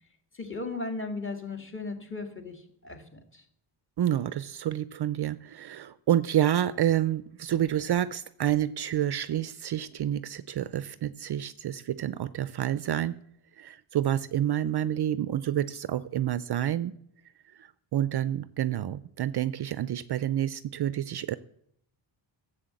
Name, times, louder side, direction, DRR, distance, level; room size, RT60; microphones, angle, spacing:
voice 1, 0.3-3.4, left 3 dB, 25° left, 5 dB, 1.8 m, -36 dB
voice 2, 4.0-13.2 13.6-16.9 17.6-21.4, right 11 dB, 55° right, 16 dB, 0.5 m, -28 dB
14.0 x 7.7 x 7.7 m, 0.70 s
wide cardioid pair, 170°, 50 cm